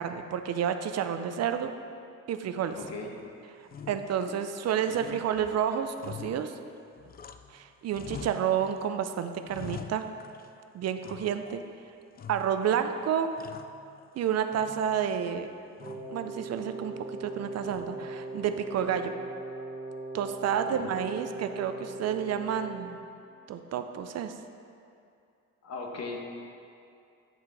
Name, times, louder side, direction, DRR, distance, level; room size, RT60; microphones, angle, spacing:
voice 1, 0.0-1.7 2.3-2.8 3.6-6.6 7.5-10.1 10.7-11.6 12.3-13.3 14.1-15.5 16.1-16.9 17.2-19.1 20.1-23.0 23.5-24.3, right 8 dB, 55° right, 8 dB, 0.5 m, -30 dB
voice 2, 2.7-3.1 20.6-20.9 25.6-26.2, left 3 dB, 60° left, 1 dB, 1.2 m, -38 dB
sound 1, 2.7-3.3 3.7-4.6 4.9-7.6 7.9-8.9 9.2-10.6 11.0-11.7 12.2-12.8 13.1-14.2 14.5-15.2 15.8-16.2 17.6-18.1, left 7 dB, 30° left, 0.4 m, -46 dB
Wind instrument woodwind instrument, 15.8-23.1, right 2 dB, 20° right, 1.0 m, -40 dB
8.9 x 5.3 x 4.0 m, 2.5 s
cardioid pair, 90°, 30 cm